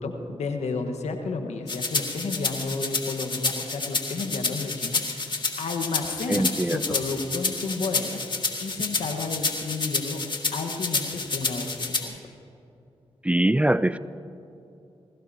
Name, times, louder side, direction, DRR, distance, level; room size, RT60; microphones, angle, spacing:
voice 1, 0.0-8.2 8.6-10.2 10.5-11.7 12.0-12.3, left 3 dB, 80° left, 5 dB, 1.3 m, -32 dB
sound 1, 1.7-12.0, left 3 dB, 45° left, 2.0 m, -29 dB
voice 2, 6.3-6.8 13.2-14.0, right 1 dB, 10° right, 16 dB, 0.4 m, -22 dB
21.0 x 16.5 x 2.8 m, 2.7 s
supercardioid pair, 40°, 11 cm